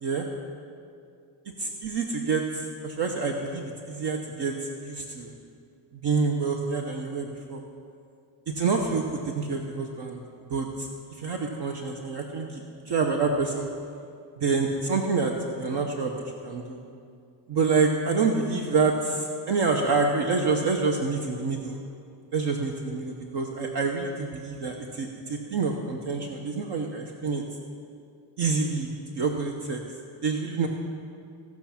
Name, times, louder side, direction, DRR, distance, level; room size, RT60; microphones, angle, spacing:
voice 1, 1.6-5.3 5.9-7.6 8.5-10.2 10.5-10.9 11.2-13.7 14.4-16.1 16.4-16.8 17.5-21.8 22.3-27.4 28.4-29.8 30.2-30.7, right 4 dB, 60° right, 2 dB, 1.0 m, -27 dB
17.0 x 6.0 x 5.8 m, 2.4 s
cardioid pair, 115°, 46 cm